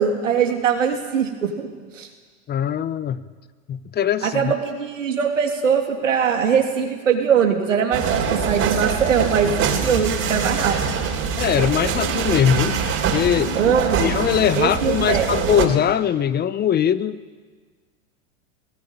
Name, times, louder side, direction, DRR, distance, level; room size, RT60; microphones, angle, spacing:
voice 1, 0.0-1.7 1.9-2.1 4.2-10.8 13.5-14.1 14.6-15.3, right 7 dB, 90° right, 3 dB, 3.2 m, -21 dB
voice 2, 2.5-3.2 3.7-4.5 11.4-12.8 13.1-13.5 14.0-17.2, left 9 dB, 25° left, 15 dB, 0.9 m, -21 dB
sound 1, 7.9-15.7, right 6 dB, 40° right, 3.9 m, -24 dB
20.5 x 17.0 x 9.1 m, 1.5 s
hypercardioid pair, 100°, 37 cm